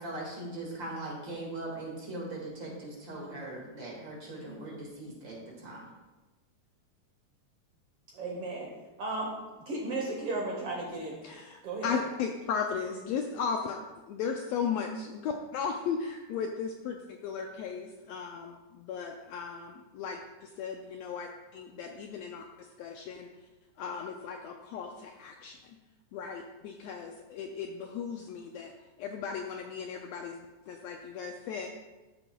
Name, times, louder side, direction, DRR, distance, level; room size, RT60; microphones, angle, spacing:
voice 1, 0.0-5.9, right 2 dB, 45° right, -3 dB, 2.4 m, -40 dB
voice 2, 8.1-8.7 9.0-9.3 9.7-11.2 11.6-12.0, right 2 dB, 60° right, -1 dB, 1.7 m, -34 dB
voice 3, 11.2-13.8 14.1-22.4 22.8-23.3 23.8-25.6 26.1-28.7 29.0-31.7, left 6 dB, 80° left, 3 dB, 1.5 m, -36 dB
13.0 x 7.0 x 2.3 m, 1.2 s
omnidirectional pair, 3.4 m